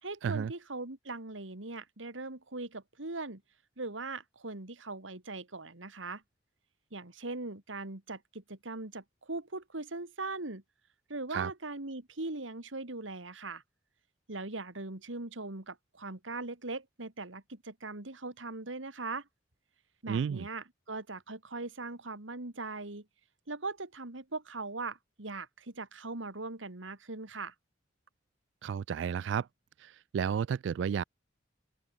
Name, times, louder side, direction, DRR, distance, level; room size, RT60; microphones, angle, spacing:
voice 1, 0.0-3.4 3.8-6.2 6.9-10.6 11.1-13.6 14.3-19.3 20.0-23.1 23.5-27.5, right 3 dB, 90° right, 2.5 m, -40 dB
voice 2, 20.1-20.5 28.6-29.5 29.8-31.0, right 7 dB, 65° right, 0.3 m, -32 dB
open air
head